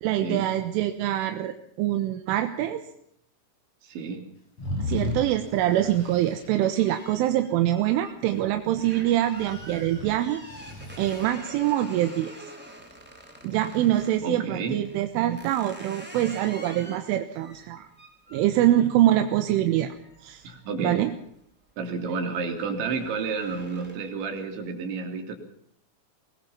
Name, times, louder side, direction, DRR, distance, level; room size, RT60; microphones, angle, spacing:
voice 1, 0.0-2.8 4.8-10.4 11.0-12.4 13.4-17.9 18.3-20.0 20.2-20.4 20.8-21.1, right 13 dB, 85° right, 7 dB, 3.7 m, -24 dB
voice 2, 3.8-4.2 14.2-14.8 20.4-21.0 21.8-25.4, right 4 dB, 70° right, 4 dB, 5.4 m, -31 dB
sound 1, 4.6-6.5 9.3-11.3, left 3 dB, 30° left, 7.3 m, -35 dB
sound 2, 4.9-14.2 14.8-21.3 21.7-22.1 22.4-24.2, right 1 dB, ahead, 4.1 m, -47 dB
24.0 x 20.5 x 5.8 m, 0.69 s
omnidirectional pair, 5.6 m